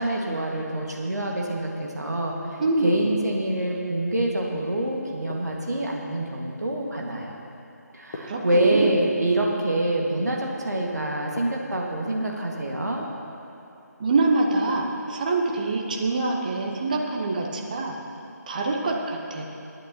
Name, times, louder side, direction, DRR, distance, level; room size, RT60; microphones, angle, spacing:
voice 1, 0.0-7.4 7.9-13.1, right 1 dB, 65° right, -1 dB, 1.8 m, -26 dB
voice 2, 2.6-3.0 8.2-8.9 14.0-18.0 18.5-19.4, right 3 dB, 25° right, 0 dB, 1.0 m, -25 dB
sound 1, 5.3-6.1 8.1-9.2 11.4-12.1 14.7-15.3, left 2 dB, 25° left, 1.0 m, -42 dB
23.5 x 9.3 x 3.0 m, 2.7 s
figure-of-eight pair, 155°, 10 cm